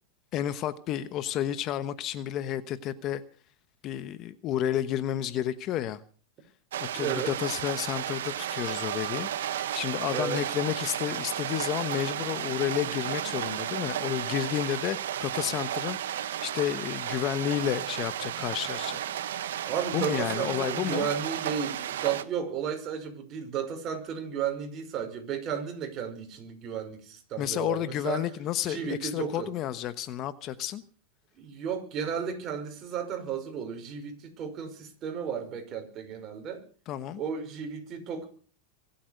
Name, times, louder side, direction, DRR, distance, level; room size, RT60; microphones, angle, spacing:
voice 1, 0.3-3.2 3.8-6.0 6.9-19.0 19.9-21.1 27.4-30.8 36.9-37.2, left 11 dB, 40° left, 1.1 m, -31 dB
sound 1, 6.7-22.2, right 11 dB, 85° right, 1.3 m, -33 dB
voice 2, 6.9-7.3 10.1-10.4 19.6-28.2 28.6-29.5 31.4-36.6 37.2-38.3, right 7 dB, 35° right, 5.5 m, -33 dB
24.5 x 8.6 x 6.6 m
supercardioid pair, 130°, 0 cm